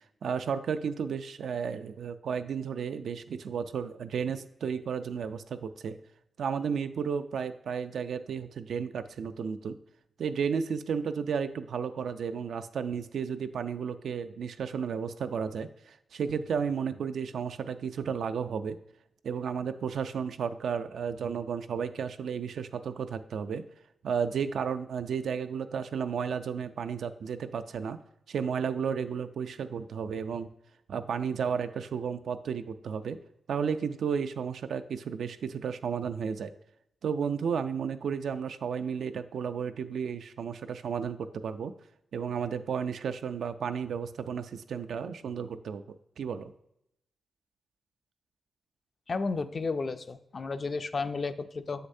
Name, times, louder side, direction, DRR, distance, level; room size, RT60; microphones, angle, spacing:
voice 1, 0.2-6.0 6.4-9.8 10.2-18.8 19.2-23.6 24.0-28.0 28.3-30.5 30.9-33.2 33.5-36.5 37.0-41.7 42.1-46.5, right 6 dB, 85° right, 10 dB, 0.4 m, -33 dB
voice 2, 49.1-51.9, left 4 dB, 40° left, 11 dB, 0.4 m, -32 dB
7.3 x 6.6 x 2.6 m, 0.80 s
wide cardioid pair, 120°, 0 cm